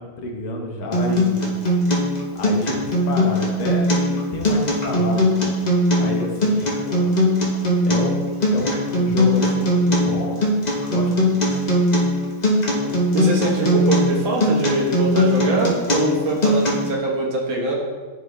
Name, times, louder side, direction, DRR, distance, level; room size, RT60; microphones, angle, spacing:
voice 1, 0.0-1.5 2.4-5.5 6.0-7.2 7.8-10.4 10.8-11.5, left 2 dB, 75° left, 0 dB, 1.8 m, -30 dB
Acoustic guitar, 0.9-16.9, left 1 dB, 55° left, 0.4 m, -20 dB
voice 2, 12.8-17.7, right 2 dB, 70° right, -2 dB, 2.0 m, -23 dB
11.0 x 3.8 x 3.1 m, 1.3 s
omnidirectional pair, 2.3 m